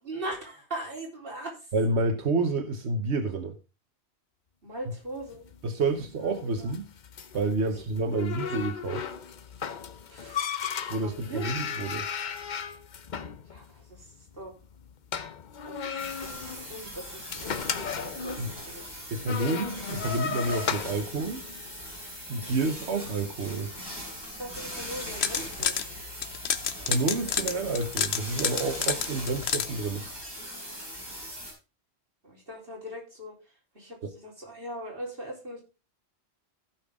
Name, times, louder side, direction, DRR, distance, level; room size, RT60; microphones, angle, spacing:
voice 1, 0.0-1.7 4.6-5.4 6.6-6.7 7.6-7.8 8.4-8.5 10.1-10.6 10.9-11.5 13.5-14.1 14.3-14.5 15.6-15.9 16.2-18.8 24.4-25.8 32.2-33.4 33.7-35.6, right 1 dB, 55° right, 4.2 m, -40 dB
voice 2, 1.7-3.6 5.6-6.9 7.3-9.0 10.9-12.1 18.4-18.5 19.1-21.4 22.3-23.7 26.8-30.1 34.0-34.1, right 3 dB, 80° right, 1.3 m, -29 dB
sound 1, 5.1-22.4, left 7 dB, 50° left, 0.8 m, -36 dB
sound 2, 16.0-31.5, equal, 20° right, 5.6 m, -40 dB
sound 3, 24.9-25.8 26.2-29.7, left 8 dB, 70° left, 1.1 m, -28 dB
15.5 x 5.8 x 3.6 m
omnidirectional pair, 1.1 m